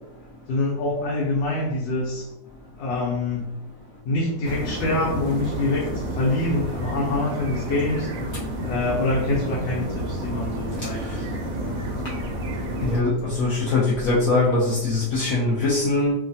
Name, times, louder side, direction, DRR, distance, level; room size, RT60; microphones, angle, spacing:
voice 1, 0.5-2.3 2.8-3.5 4.0-8.1 8.6-11.3 11.6-12.1, left 2 dB, 80° left, -4 dB, 1.3 m, -25 dB
sound 1, 4.4-13.0, right 1 dB, 70° right, 0.8 m, -30 dB
voice 2, 12.8-16.1, left 2 dB, 65° left, -6 dB, 0.8 m, -22 dB
3.1 x 2.2 x 2.6 m, 0.88 s
omnidirectional pair, 1.9 m